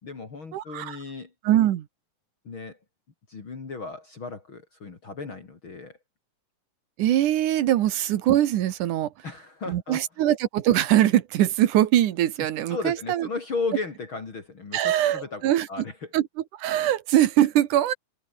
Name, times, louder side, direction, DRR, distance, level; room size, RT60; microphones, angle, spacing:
voice 1, 0.0-1.3 2.5-2.8 3.3-6.0 9.2-10.0 12.7-16.1, left 4 dB, 40° left, 3.7 m, -35 dB
voice 2, 0.5-1.0 1.4-1.9 7.0-9.1 9.7-13.3 14.7-15.7 16.1-16.3 16.6-17.9, right 12 dB, 75° right, 2.7 m, -22 dB
omnidirectional pair, 3.6 m